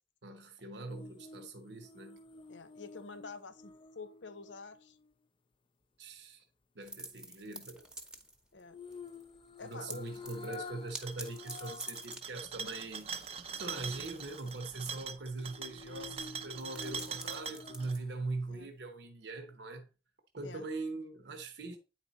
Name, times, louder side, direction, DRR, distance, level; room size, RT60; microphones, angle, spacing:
voice 1, 0.2-2.2 6.0-6.4 6.7-7.9 9.6-13.1 13.6-19.9 20.3-21.8, right 3 dB, 65° right, 1.0 m, -42 dB
sound 1, 0.9-5.1 8.7-12.1 12.5-12.6 15.4-18.3 18.6-18.7, left 5 dB, 30° left, 0.5 m, -50 dB
voice 2, 2.5-5.0 8.5-8.8 9.6-10.1 18.5-18.7 20.4-20.6, left 4 dB, 85° left, 0.8 m, -48 dB
sound 2, 6.8-8.6 8.9-9.3 9.6-18.6, right 1 dB, 5° right, 0.9 m, -49 dB
sound 3, 10.9-17.9, right 6 dB, 35° right, 0.6 m, -43 dB
9.3 x 4.4 x 4.0 m
head